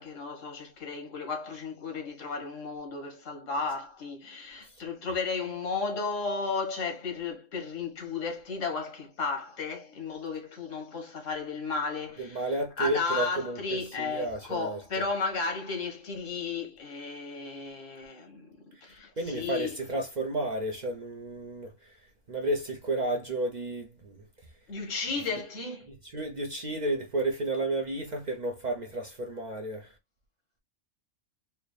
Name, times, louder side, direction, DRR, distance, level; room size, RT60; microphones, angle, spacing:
voice 1, 0.0-18.5 18.8-19.8 24.7-25.9, left 4 dB, 80° left, 1.5 m, -34 dB
voice 2, 12.2-15.0 19.2-21.9 22.3-24.2 26.1-29.9, right 2 dB, 50° right, 0.6 m, -32 dB
4.2 x 2.1 x 3.2 m
omnidirectional pair, 1.3 m